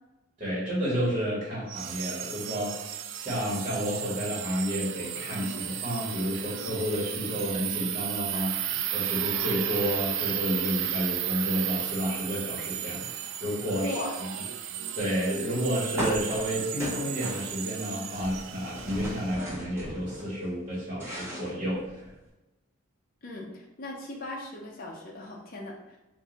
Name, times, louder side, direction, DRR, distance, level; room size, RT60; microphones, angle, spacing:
voice 1, 0.4-2.9 3.2-8.5 8.9-14.0 14.9-21.8, equal, 30° right, -9 dB, 1.5 m, -31 dB
sound 1, 1.7-19.4, right 11 dB, 70° right, 0.3 m, -34 dB
voice 2, 13.8-14.2 23.2-26.0, left 1 dB, 45° left, -1 dB, 0.6 m, -38 dB
sound 2, 16.0-17.9 18.1-20.3 20.7-22.2, equal, 10° right, 1.1 m, -36 dB
3.7 x 2.6 x 3.8 m, 1.0 s
head